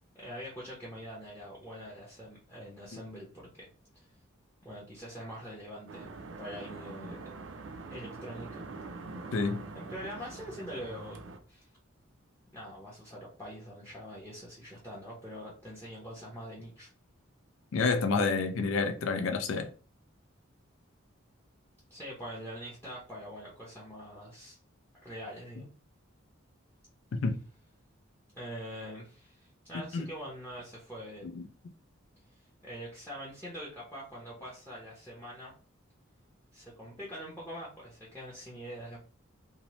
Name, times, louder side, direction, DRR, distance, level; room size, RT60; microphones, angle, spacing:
voice 1, 0.1-3.7 3.9-4.0 4.6-6.1 6.4-7.2 7.9-8.7 9.7-11.2 11.5-11.7 12.5-16.9 21.9-24.6 25.0-25.7 28.3-31.3 32.6-35.5 36.5-39.0, equal, 10° left, 0.6 m, -44 dB
sound 1, 5.9-11.4, right 3 dB, 65° right, 0.4 m, -44 dB
voice 2, 9.3-9.6 17.7-19.7 27.1-27.4 29.9-30.1 31.2-31.5, left 4 dB, 70° left, 0.4 m, -29 dB
2.8 x 2.0 x 2.9 m
head